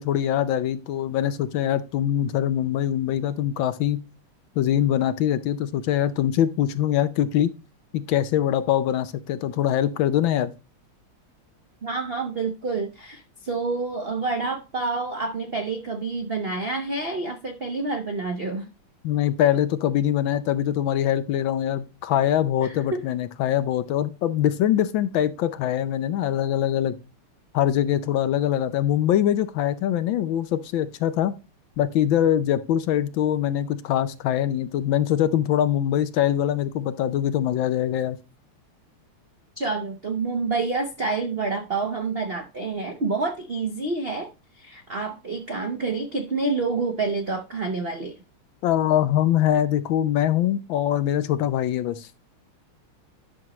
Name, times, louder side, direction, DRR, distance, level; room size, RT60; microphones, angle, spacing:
voice 1, 0.0-4.0 4.6-7.5 7.9-10.5 19.0-26.9 27.5-31.3 31.8-38.2 48.6-52.1, left 11 dB, 75° left, 1.3 m, -23 dB
voice 2, 11.8-18.7 22.6-23.0 39.6-48.2, right 3 dB, 80° right, 0.5 m, -28 dB
10.5 x 6.1 x 3.0 m
omnidirectional pair, 2.4 m